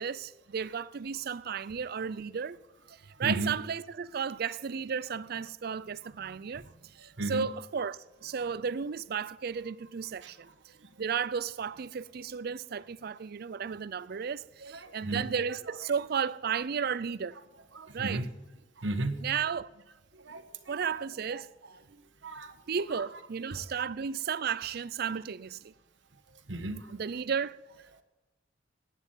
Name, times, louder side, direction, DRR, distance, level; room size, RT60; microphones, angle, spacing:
voice 1, 0.0-2.6 3.2-6.7 7.0-10.5 11.0-17.4 17.9-18.2 19.2-19.7 20.7-21.5 22.7-25.7 26.9-27.6, right 6 dB, 55° right, 0.4 m, -34 dB
voice 2, 3.2-3.6 7.2-7.5 10.2-10.3 14.6-15.9 17.7-18.3 18.8-19.2 20.2-20.9 21.3-21.8 22.2-23.2 25.1-25.2 26.5-26.9, right 2 dB, 75° right, 1.2 m, -36 dB
11.5 x 9.4 x 8.8 m
head